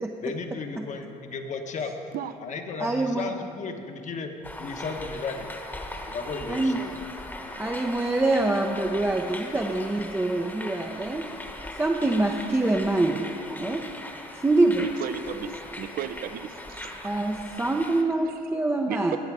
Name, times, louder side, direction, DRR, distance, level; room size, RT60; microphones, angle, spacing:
voice 1, 0.2-1.9 2.4-4.3 4.6-5.5 6.1-7.0, left 4 dB, 45° left, 5 dB, 1.1 m, -34 dB
voice 2, 2.8-3.3 6.5-6.8 7.6-11.3 11.8-13.3 13.6-13.8 14.4-14.8 17.0-19.2, right 2 dB, 10° right, 1 dB, 0.6 m, -25 dB
sound 1, 4.4-18.0, left 1 dB, 10° left, 1.1 m, -39 dB
voice 3, 14.8-15.5 15.8-16.8 18.9-19.2, right 9 dB, 60° right, 11 dB, 0.6 m, -34 dB
17.5 x 6.5 x 4.8 m, 2.6 s
cardioid pair, 110°, 17 cm